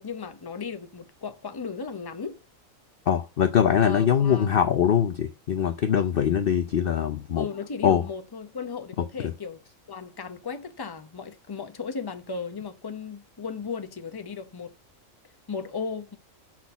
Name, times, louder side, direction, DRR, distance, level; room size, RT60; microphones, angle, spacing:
voice 1, 0.0-2.4 3.8-4.5 7.4-9.6 9.9-14.7 15.5-16.2, left 5 dB, 20° left, 0.7 m, -36 dB
voice 2, 3.1-7.5 7.8-8.0, left 8 dB, 55° left, 0.7 m, -22 dB
6.1 x 6.1 x 7.0 m
omnidirectional pair, 1.4 m